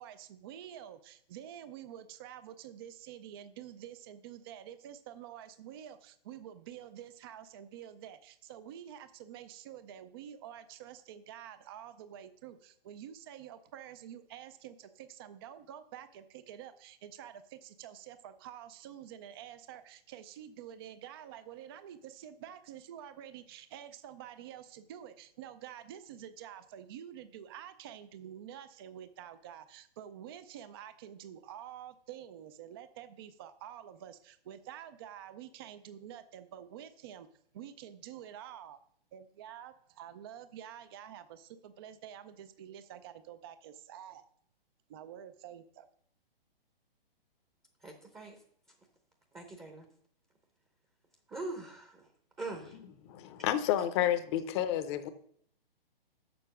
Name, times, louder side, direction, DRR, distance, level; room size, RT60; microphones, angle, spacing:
voice 1, 0.0-37.3 37.5-38.8 39.1-44.2 44.9-45.9, right 10 dB, 25° right, 11 dB, 0.4 m, -48 dB
voice 2, 47.8-48.4 49.3-49.9 51.3-52.1 52.4-52.8, right 2 dB, 10° right, 4 dB, 0.7 m, -42 dB
voice 3, 53.0-55.1, left 11 dB, 30° left, 10 dB, 0.7 m, -30 dB
6.9 x 6.2 x 6.1 m, 0.64 s
hypercardioid pair, 130°, 30 cm